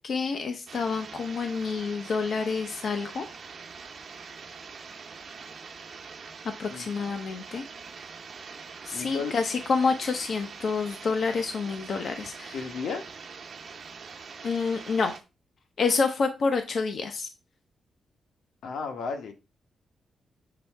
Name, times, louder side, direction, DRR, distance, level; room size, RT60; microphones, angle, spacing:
voice 1, 0.0-3.2 6.6-7.6 8.8-12.7 14.4-15.1 15.8-17.3, left 4 dB, 60° left, 0.8 m, -28 dB
sound 1, 0.7-15.2, right 5 dB, 50° right, 1.0 m, -44 dB
voice 2, 8.9-9.3 12.5-13.0 18.6-19.3, left 5 dB, 85° left, 1.2 m, -33 dB
6.9 x 3.3 x 4.5 m
wide cardioid pair, 125°, 0 cm